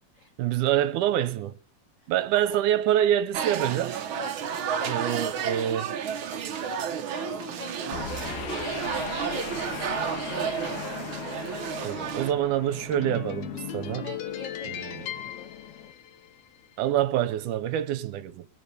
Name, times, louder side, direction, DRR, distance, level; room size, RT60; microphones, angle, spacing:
voice 1, 0.4-1.5 2.1-4.0 4.8-5.9 11.8-14.1 14.7-14.8 16.8-18.5, right 11 dB, 80° right, 2.3 m, -26 dB
voice 2, 2.0-2.6 4.1-4.3 4.8-5.1 5.5-5.7 6.0-6.4 7.1-8.1 8.5-10.2 13.7-15.5, left 3 dB, 85° left, 1.0 m, -44 dB
sound 1, 3.3-12.3, right 7 dB, 65° right, 1.3 m, -31 dB
sound 2, 7.9-16.5, left 9 dB, 65° left, 2.2 m, -37 dB
21.0 x 7.1 x 6.7 m
omnidirectional pair, 3.6 m